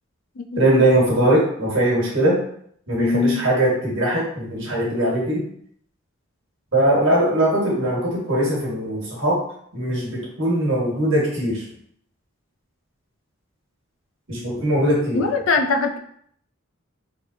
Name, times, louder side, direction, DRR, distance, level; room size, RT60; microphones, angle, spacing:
voice 1, 0.6-2.4 2.9-5.4 6.7-9.4 9.7-11.6 14.3-15.2, right 1 dB, 60° right, -4 dB, 1.6 m, -20 dB
voice 2, 3.0-3.4 15.1-16.0, left 4 dB, 65° left, 4 dB, 0.5 m, -22 dB
3.9 x 3.3 x 2.7 m, 0.65 s
head